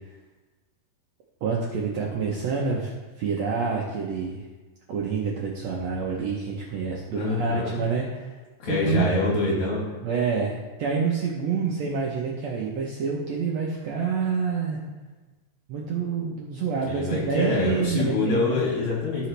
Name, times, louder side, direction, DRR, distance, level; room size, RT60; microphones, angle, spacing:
voice 1, 1.4-4.4 4.9-8.3 8.7-9.1 10.0-14.8 15.7-18.6, right 5 dB, 70° right, -3 dB, 1.7 m, -27 dB
voice 2, 7.1-7.8 8.6-10.0 16.9-19.3, left 2 dB, 60° left, -4 dB, 3.2 m, -25 dB
15.0 x 5.0 x 3.3 m, 1.2 s
omnidirectional pair, 4.0 m